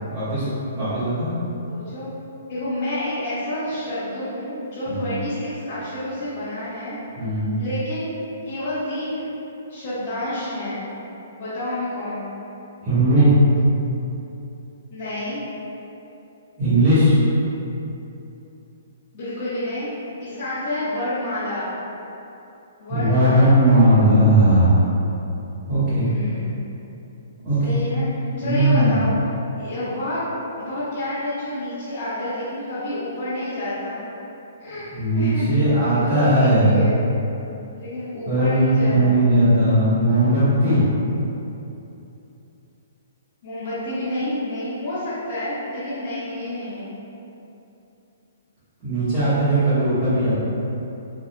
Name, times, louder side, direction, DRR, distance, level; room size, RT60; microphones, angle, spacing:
voice 1, 0.1-0.4 0.7-1.3 4.9-5.1 7.2-7.5 12.8-13.3 16.6-17.2 22.9-24.9 25.7-26.1 27.4-27.8 28.4-29.0 34.9-36.8 38.2-40.8 48.8-50.3, right 1 dB, 30° right, -17 dB, 1.3 m, -18 dB
voice 2, 1.7-2.1 2.5-7.0 7.6-8.1 8.4-9.3 9.7-10.8 11.3-12.3 14.9-15.4 19.1-19.9 20.2-21.7 22.8-23.6 25.9-26.6 27.6-29.1 29.6-30.2 30.6-34.0 34.6-34.9 35.2-35.4 35.9-37.0 37.7-39.2 43.4-46.9, left 1 dB, 45° left, -16 dB, 1.1 m, -29 dB
3.7 x 2.5 x 2.2 m, 2.9 s
hypercardioid pair, 140°, 0 cm